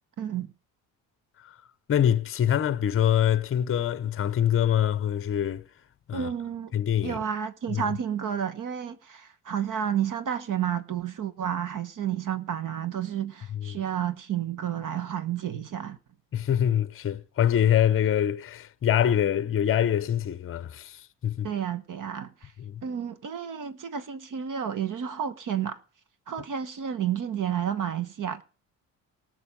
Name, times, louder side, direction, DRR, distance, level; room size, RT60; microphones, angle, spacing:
voice 1, 0.2-0.5 6.1-6.7 7.0-16.0 21.4-22.5 22.8-25.8 26.3-28.4, right 9 dB, 50° right, 1.1 m, -31 dB
voice 2, 1.9-5.6 6.1-6.3 6.7-7.2 7.7-7.8 13.5-13.8 16.3-21.5 22.6-22.8, left 10 dB, 30° left, 0.7 m, -25 dB
18.0 x 6.2 x 5.1 m
supercardioid pair, 65°, 41 cm